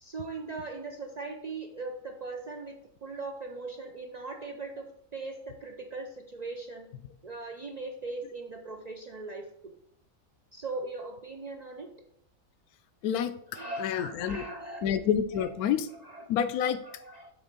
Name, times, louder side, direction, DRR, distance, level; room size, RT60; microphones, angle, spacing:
voice 1, 0.0-2.8 3.0-6.9 7.2-9.7 10.5-11.9 13.5-14.9 15.3-15.5 16.0-16.3 16.8-17.3, right 3 dB, 80° right, 3 dB, 0.3 m, -39 dB
voice 2, 13.8-14.4 14.8-15.9 16.3-16.8, left 8 dB, 90° left, 12 dB, 1.1 m, -28 dB
7.8 x 3.2 x 5.2 m, 0.74 s
omnidirectional pair, 1.5 m